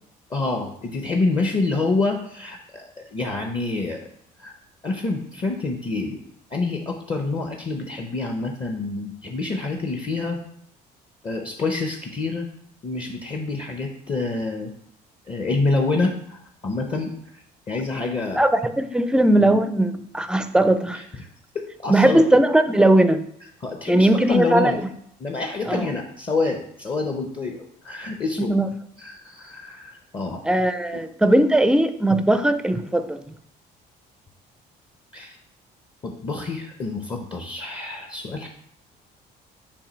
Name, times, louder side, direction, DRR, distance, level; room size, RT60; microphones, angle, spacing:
voice 1, 0.3-4.0 4.4-4.5 4.8-6.2 6.5-10.4 11.2-12.5 12.8-14.7 15.3-17.1 17.7-18.4 20.9-21.3 21.5-22.2 23.6-24.8 25.2-27.6 27.8-28.5 29.0-30.4 30.9-31.0 35.1-35.4 36.0-38.5, left 3 dB, 30° left, 3 dB, 0.7 m, -27 dB
voice 2, 18.4-21.0 21.9-23.2 23.9-24.8 25.7-25.8 28.4-28.7 30.4-33.2, right 1 dB, 5° right, 10 dB, 0.4 m, -19 dB
7.0 x 2.7 x 5.1 m, 0.70 s
cardioid pair, 110°, 17 cm